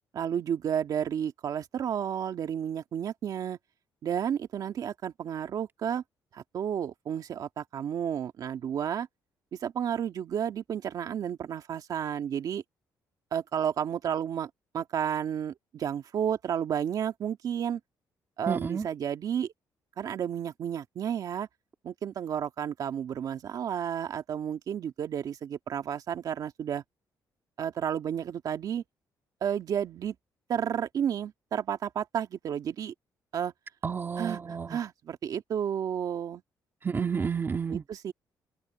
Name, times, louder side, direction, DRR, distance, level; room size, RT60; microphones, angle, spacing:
voice 1, 0.1-3.6 4.0-6.0 6.3-9.1 9.6-12.6 13.3-17.8 18.4-19.5 20.0-21.5 21.8-26.8 27.6-28.8 29.4-30.2 30.5-32.9 33.3-33.5 34.2-36.4 37.7-38.1, right 8 dB, 55° right, 2.0 m, -32 dB
voice 2, 18.5-18.9 33.8-34.8 36.8-37.8, right 6 dB, 30° right, 2.6 m, -30 dB
cardioid pair, 140°, 8 cm